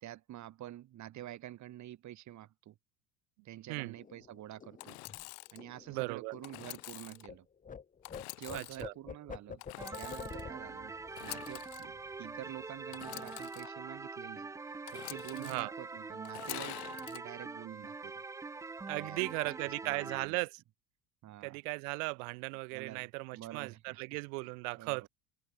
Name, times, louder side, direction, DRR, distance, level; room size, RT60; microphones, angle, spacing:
voice 1, 0.0-2.8 3.4-5.0 5.5-7.5 8.4-9.6 10.0-10.9 11.2-14.5 14.9-18.2 19.0-20.4 21.2-21.6 22.7-24.0 24.8-25.1, right 13 dB, 40° right, 1.0 m, -48 dB
sound 1, 4.0-7.4 7.6-12.6 12.9-13.2 13.4-14.0, left 6 dB, 20° left, 0.7 m, -49 dB
Engine / Sawing, 4.8-5.6 6.4-7.3 8.0-8.9 9.6-10.5 11.1-11.9 12.9-13.7 14.9-15.6 16.2-17.2, left 40 dB or more, 60° left, 0.6 m, -46 dB
voice 2, 5.9-6.3 8.5-8.9 15.4-15.7 18.9-20.6 21.4-25.1, right 33 dB, 70° right, 1.0 m, -37 dB
sound 2, 9.8-20.3, right 4 dB, 10° right, 0.3 m, -44 dB
open air
hypercardioid pair, 80°, 44 cm